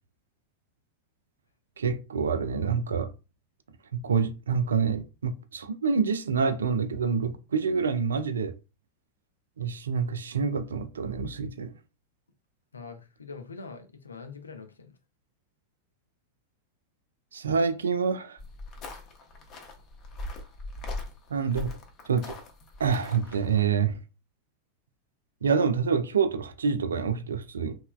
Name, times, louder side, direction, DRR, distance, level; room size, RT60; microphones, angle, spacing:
voice 1, 1.8-3.1 3.9-8.5 9.6-11.7 17.3-18.4 21.3-21.7 22.1-22.4 22.8-24.0 25.4-27.8, right 5 dB, 70° right, 0.3 m, -27 dB
voice 2, 12.7-14.9, left 4 dB, 75° left, 0.4 m, -43 dB
sound 1, 18.4-23.6, left 2 dB, 35° left, 0.7 m, -40 dB
3.1 x 2.1 x 2.2 m
figure-of-eight pair, 90°, 0 cm